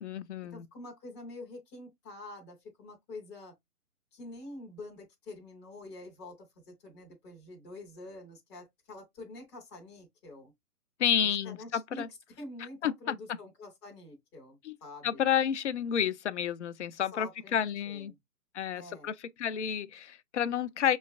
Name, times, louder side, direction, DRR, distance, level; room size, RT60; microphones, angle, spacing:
voice 1, 0.0-0.7 11.0-12.1 12.8-13.1 14.6-14.7 15.0-18.1 18.5-19.1 19.4-21.0, left 9 dB, 50° left, 0.5 m, -30 dB
voice 2, 0.5-3.5 4.1-10.5 11.2-12.0 12.4-15.3 17.1-18.2 18.7-19.1, left 2 dB, 5° left, 0.5 m, -47 dB
6.3 x 3.1 x 2.3 m
figure-of-eight pair, 130°, 46 cm